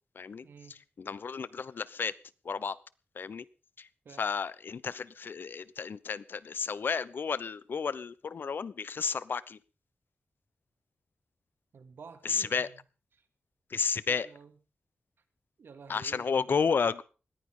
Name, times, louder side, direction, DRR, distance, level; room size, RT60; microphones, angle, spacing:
voice 1, 0.4-0.7 4.0-4.2 11.7-12.8 13.1-13.2 14.1-14.6 15.6-16.7, right 5 dB, 80° right, 8 dB, 2.6 m, -51 dB
voice 2, 1.0-2.1 2.4-2.8 3.2-3.4 3.8-3.9 4.2-9.6 12.2-12.7 13.7-14.3 15.9-17.0, left 5 dB, 65° left, 18 dB, 0.9 m, -32 dB
20.5 x 15.0 x 3.9 m, 0.35 s
wide cardioid pair, 125°, 4 cm